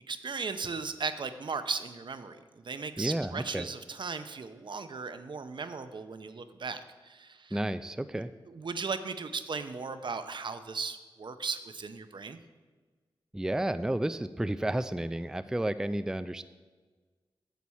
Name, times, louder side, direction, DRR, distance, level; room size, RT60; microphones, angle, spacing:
voice 1, 0.1-2.4 2.6-7.6 8.5-12.4, right 4 dB, 55° right, 10 dB, 0.6 m, -37 dB
voice 2, 3.0-3.7 7.5-8.3 13.3-16.4, right 1 dB, 5° right, 12 dB, 0.3 m, -31 dB
9.2 x 6.9 x 4.3 m, 1.4 s
cardioid pair, 40°, 9 cm